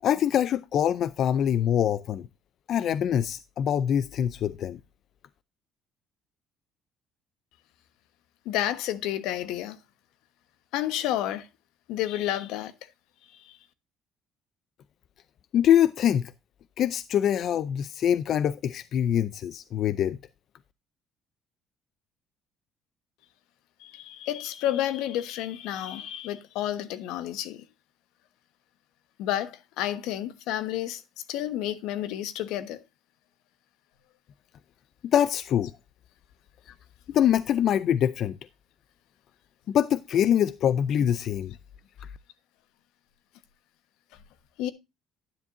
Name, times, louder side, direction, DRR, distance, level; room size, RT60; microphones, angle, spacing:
voice 1, 0.0-2.3 2.7-4.8 15.5-16.3 16.8-20.2 35.0-35.7 36.7-36.8 37.1-38.4 39.7-41.5, left 10 dB, 45° left, 0.5 m, -24 dB
voice 2, 8.4-9.8 10.7-11.5 11.9-12.7 13.4-13.6 23.8-27.6 29.2-31.0 31.3-32.8 44.6-44.7, left 12 dB, 80° left, 1.2 m, -30 dB
11.0 x 9.6 x 2.6 m
cardioid pair, 155°, 0 cm